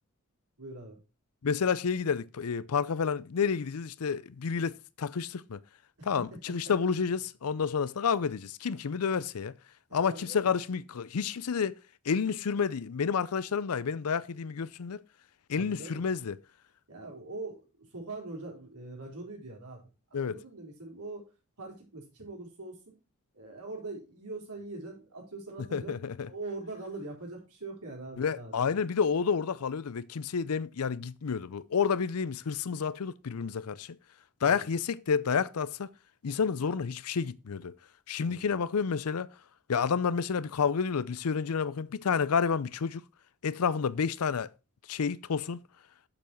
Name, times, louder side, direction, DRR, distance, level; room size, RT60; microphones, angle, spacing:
voice 1, 0.6-1.0 6.0-6.7 9.9-10.5 15.6-16.0 16.9-21.3 21.6-23.0 23.3-26.0 26.2-28.9 34.4-34.6 38.2-38.6, right 2 dB, 90° right, 4.1 m, -43 dB
voice 2, 1.4-5.6 6.1-9.5 9.9-11.8 12.0-15.0 15.5-16.4 20.1-20.4 25.7-26.3 28.2-34.0 34.4-35.9 36.2-37.7 38.1-39.3 39.7-43.0 43.4-44.5 44.9-45.6, left 6 dB, 75° left, 0.5 m, -30 dB
7.5 x 7.2 x 4.5 m
head